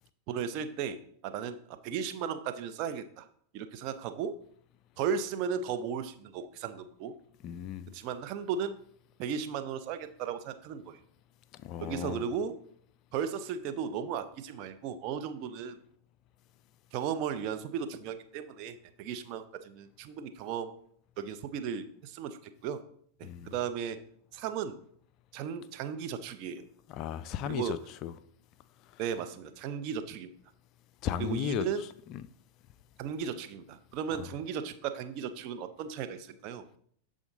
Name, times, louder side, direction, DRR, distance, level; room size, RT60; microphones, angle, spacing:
voice 1, 0.3-3.3 3.5-4.4 5.0-7.1 7.9-8.8 9.2-11.0 11.8-12.5 13.1-15.8 16.9-20.8 21.2-22.8 23.2-24.0 24.3-24.8 25.3-26.6 27.5-27.8 29.0-30.3 31.2-31.8 33.0-36.8, right 7 dB, 40° right, 0.6 m, -35 dB
voice 2, 7.4-7.9 11.6-12.2 23.2-23.5 26.9-28.1 28.9-29.0 31.0-31.7 32.1-32.2 34.2-34.3, left 10 dB, 40° left, 0.3 m, -35 dB
7.0 x 3.8 x 3.9 m
figure-of-eight pair, 90°, 0 cm